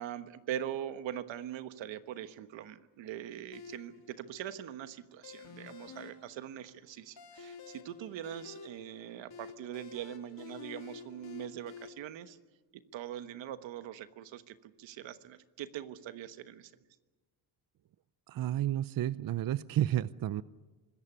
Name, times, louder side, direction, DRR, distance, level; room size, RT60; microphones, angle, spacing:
voice 1, 0.0-12.4 12.7-16.7, right 10 dB, 80° right, 11 dB, 1.3 m, -42 dB
sound 1, 3.5-11.9, left 6 dB, 55° left, 3.3 m, -50 dB
voice 2, 18.3-20.4, right 12 dB, 50° right, 17 dB, 0.6 m, -31 dB
25.5 x 14.5 x 9.9 m, 1.3 s
cardioid pair, 85°, 44 cm